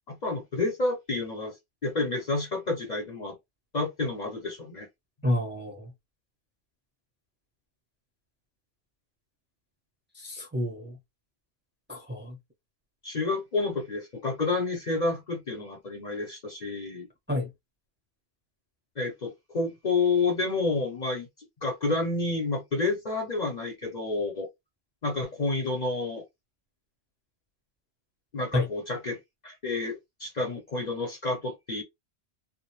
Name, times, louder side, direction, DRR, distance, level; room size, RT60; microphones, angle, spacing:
voice 1, 0.1-1.5 1.8-3.4 3.7-4.9 13.0-17.1 19.0-21.3 21.6-24.5 25.0-26.2 28.3-29.2 29.4-31.8, left 3 dB, 45° left, 0.7 m, -29 dB
voice 2, 5.2-5.9 10.1-11.0 11.9-12.4 17.3-17.5 28.5-28.7, left 1 dB, 10° right, 0.6 m, -29 dB
2.4 x 2.1 x 3.0 m
omnidirectional pair, 1.2 m